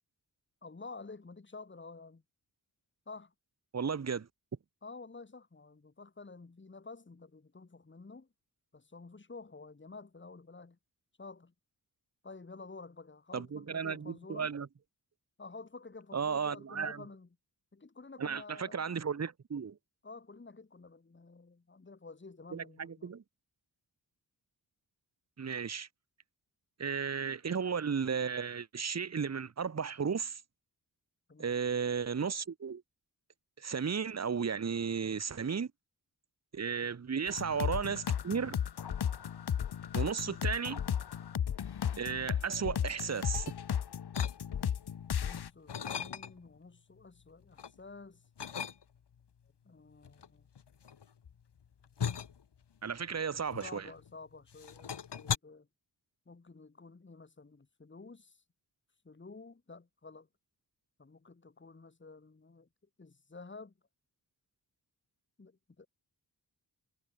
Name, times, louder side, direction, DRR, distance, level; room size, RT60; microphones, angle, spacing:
voice 1, 0.6-2.2 3.1-3.3 4.8-8.3 8.7-10.8 11.2-11.5 12.2-14.5 15.4-17.3 17.7-18.9 20.0-23.2 31.3-31.6 36.8-37.0 45.2-48.2 49.7-50.5 53.6-55.7 56.3-58.4 59.1-60.3 61.0-62.7 63.0-63.7 65.4-65.9, left 3 dB, 30° left, 3.6 m, -50 dB
voice 2, 3.7-4.3 13.3-14.7 16.1-17.0 18.2-19.8 22.5-23.2 25.4-25.9 26.8-30.4 31.4-32.8 33.6-35.7 36.5-38.5 39.9-40.8 42.0-43.5 52.8-53.9, right 6 dB, 40° right, 1.3 m, -34 dB
sound 1, 37.3-45.5, left 8 dB, 70° left, 1.3 m, -34 dB
sound 2, 44.1-44.8 45.2-46.6 47.0-47.8 48.4-49.2 50.0-54.2 54.5-55.4, left 7 dB, 90° left, 3.5 m, -39 dB
wide cardioid pair, 165°, 40 cm